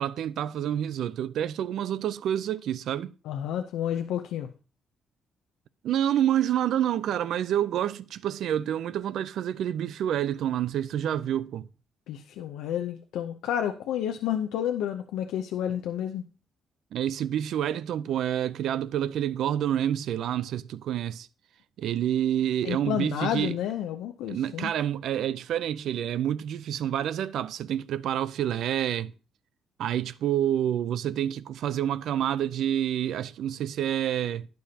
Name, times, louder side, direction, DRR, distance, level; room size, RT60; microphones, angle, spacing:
voice 1, 0.0-3.1 5.8-11.7 16.9-21.3 21.8-23.6 24.3-29.1 29.8-34.5, right 10 dB, 75° right, 0.5 m, -28 dB
voice 2, 3.3-4.5 12.1-16.2 22.6-24.7, left 10 dB, 90° left, 0.7 m, -30 dB
11.5 x 9.4 x 2.8 m
cardioid pair, 90°, 0 cm